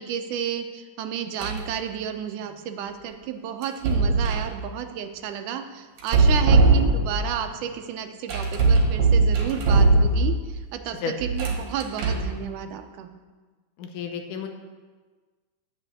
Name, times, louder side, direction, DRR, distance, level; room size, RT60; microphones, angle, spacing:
voice 1, 0.0-10.3 10.7-13.1, right 9 dB, 85° right, 7 dB, 2.3 m, -32 dB
sound 1, 1.4-1.7 3.6-4.5 6.0-7.3 8.3-10.5 11.2-12.3, right 3 dB, 65° right, 2.8 m, -20 dB
voice 2, 10.9-11.3 13.8-14.5, left 6 dB, 80° left, 5 dB, 2.5 m, -33 dB
10.5 x 6.2 x 7.8 m, 1.4 s
omnidirectional pair, 3.5 m